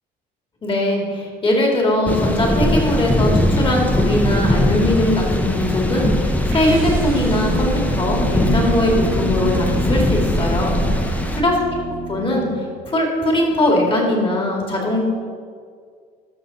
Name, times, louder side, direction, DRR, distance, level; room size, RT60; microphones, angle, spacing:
voice 1, 0.6-10.8 11.3-11.6 12.1-15.1, left 1 dB, 30° left, -1 dB, 2.4 m, -20 dB
sound 1, 2.1-11.4, left 1 dB, 10° left, 0.8 m, -20 dB
sound 2, 6.5-12.6, right 3 dB, 55° right, 1.3 m, -27 dB
13.0 x 5.9 x 4.2 m, 2.1 s
cardioid pair, 110°, 17 cm